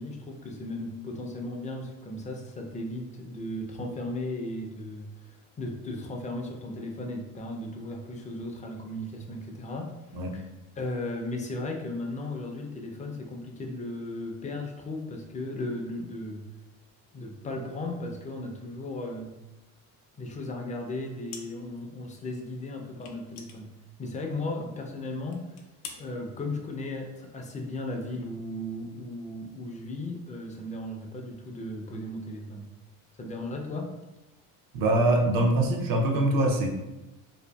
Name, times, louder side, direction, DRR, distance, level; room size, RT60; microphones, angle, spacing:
voice 1, 0.0-16.4 17.1-19.4 20.2-25.5 25.9-32.7 33.1-33.9, left 2 dB, 20° left, 2 dB, 0.4 m, -36 dB
sound 1, 21.3-21.9 22.1-22.2 23.0-24.4 24.8-24.9 25.3-26.0, left 6 dB, 85° left, 0.5 m, -45 dB
voice 2, 34.7-36.7, right 1 dB, 65° right, 2 dB, 0.6 m, -23 dB
2.6 x 2.4 x 2.2 m, 1.0 s
cardioid pair, 95°, 36 cm